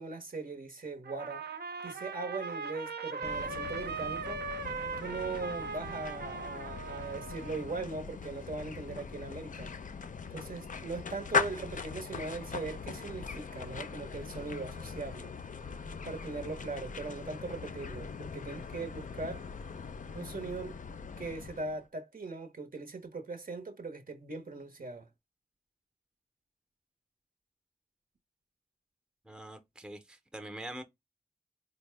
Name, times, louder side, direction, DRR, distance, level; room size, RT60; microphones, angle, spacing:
voice 1, 0.0-1.5 1.8-4.4 5.0-9.7 10.3-15.3 16.1-19.5 20.1-20.8 21.2-25.1, right 3 dB, 55° right, 0.8 m, -40 dB
Trumpet, 1.0-7.8, right 5 dB, 80° right, 0.5 m, -39 dB
sound 1, 3.2-21.8, left 5 dB, 50° left, 0.4 m, -40 dB
voice 2, 29.2-30.8, right 1 dB, 5° right, 0.6 m, -44 dB
4.0 x 2.0 x 3.2 m
wide cardioid pair, 55°, 17 cm